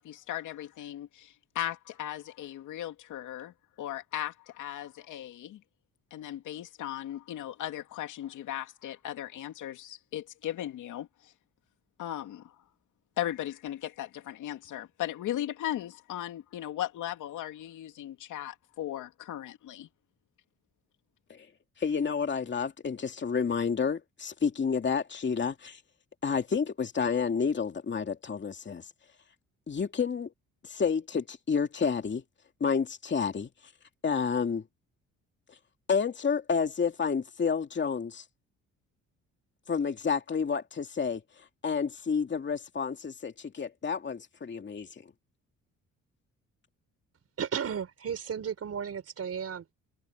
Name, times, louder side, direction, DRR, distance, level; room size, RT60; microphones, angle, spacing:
voice 1, 0.0-5.6 6.1-11.3 12.0-12.6 13.2-19.9, left 12 dB, 80° left, 2.7 m, -37 dB
voice 2, 21.8-25.8 26.2-28.8 29.7-30.3 30.6-32.2 32.6-33.5 34.0-34.6 35.9-38.2 39.7-41.2 41.6-45.1, left 6 dB, 40° left, 2.6 m, -30 dB
voice 3, 47.4-49.7, right 7 dB, 55° right, 4.8 m, -34 dB
cardioid pair, 90°, 30 cm